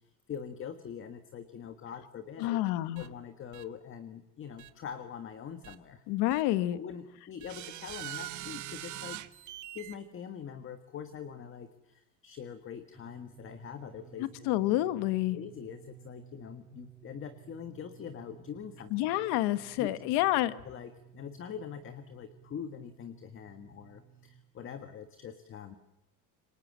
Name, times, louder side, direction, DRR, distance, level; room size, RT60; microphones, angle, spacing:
voice 1, 0.3-2.6 3.0-6.0 6.7-9.2 9.4-14.5 15.3-18.9 19.8-19.9 20.6-25.7, left 7 dB, 30° left, 8 dB, 1.6 m, -43 dB
voice 2, 2.4-3.0 6.1-6.8 14.5-15.4 18.9-20.5, left 15 dB, 80° left, 13 dB, 1.6 m, -28 dB
sound 1, 3.0-3.1 3.5-3.6 4.6-4.7 5.6-5.8 6.3-6.4 7.4-10.0, right 14 dB, 45° right, 1.4 m, -42 dB
sound 2, 12.9-24.4, right 11 dB, ahead, 2.7 m, -56 dB
27.5 x 24.5 x 7.5 m, 0.92 s
cardioid pair, 160°, 39 cm